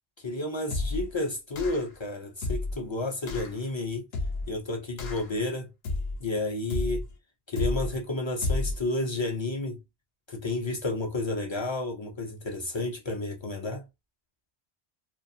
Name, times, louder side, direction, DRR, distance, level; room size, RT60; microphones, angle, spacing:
voice 1, 0.2-4.0 4.5-5.7 6.2-7.0 7.5-9.8 10.3-13.8, left 2 dB, 40° left, 0.4 m, -31 dB
sound 1, 0.7-1.1 1.6-2.0 2.4-2.8 3.3-3.6 4.1-4.6 5.0-5.4 5.8-6.3 6.7-7.1 7.6-8.0 8.4-8.8, left 2 dB, 75° left, 0.8 m, -31 dB
2.4 x 2.3 x 2.6 m
omnidirectional pair, 1.1 m